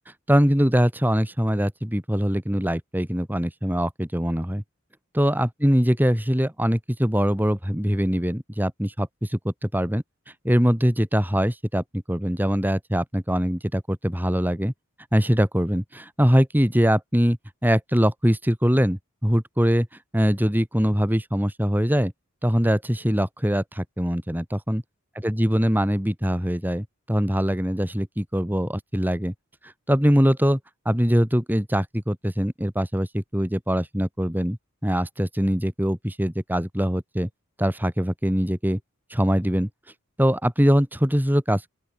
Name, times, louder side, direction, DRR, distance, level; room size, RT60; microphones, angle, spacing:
voice 1, 0.3-4.6 5.1-10.0 10.4-14.7 15.1-19.9 20.1-22.1 22.4-24.8 25.2-29.3 29.9-30.6 30.9-34.6 34.8-37.3 37.6-38.8 39.1-39.7 40.2-41.7, equal, 10° right, 4.0 m, -22 dB
open air
head